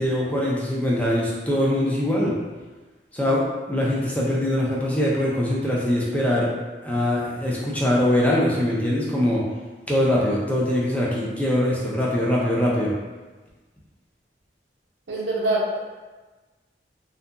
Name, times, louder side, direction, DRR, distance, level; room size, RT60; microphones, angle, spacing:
voice 1, 0.0-2.4 3.1-3.4 3.7-6.5 6.8-9.5 9.9-12.9, left 1 dB, 10° left, -5 dB, 0.4 m, -22 dB
voice 2, 15.1-15.8, right 1 dB, 85° right, -4 dB, 0.7 m, -24 dB
2.7 x 2.5 x 2.3 m, 1.3 s
head